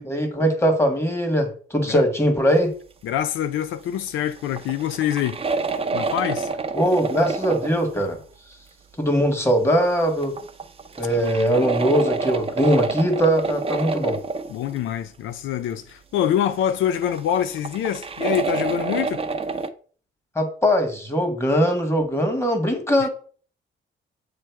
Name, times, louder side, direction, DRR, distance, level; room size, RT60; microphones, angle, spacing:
voice 1, 0.1-2.7 6.7-8.2 9.0-10.3 11.0-14.2 20.3-23.1, equal, 10° left, 1.7 m, -21 dB
voice 2, 3.0-5.4 5.9-6.5 11.1-11.7 14.5-19.2 23.0-23.1, left 10 dB, 80° left, 0.5 m, -25 dB
sound 1, 3.9-4.0 4.4-7.9 10.1-14.8 17.0-19.7, right 4 dB, 30° right, 0.7 m, -28 dB
7.6 x 3.2 x 4.6 m
cardioid pair, 90°, 20 cm